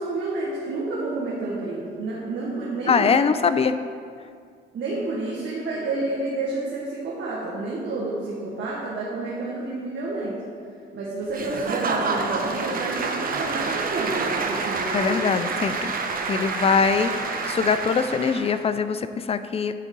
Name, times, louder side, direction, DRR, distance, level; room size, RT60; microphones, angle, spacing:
voice 1, 0.0-3.1 4.7-10.4 10.9-15.2, right 2 dB, 65° right, -6 dB, 1.5 m, -29 dB
voice 2, 2.9-3.7 14.9-15.9 16.3-19.7, left 5 dB, 30° left, 11 dB, 0.4 m, -22 dB
Applause / Crowd, 11.3-18.6, right 4 dB, 45° right, 0.8 m, -28 dB
9.8 x 3.7 x 5.3 m, 2.2 s
cardioid pair, 90°, 20 cm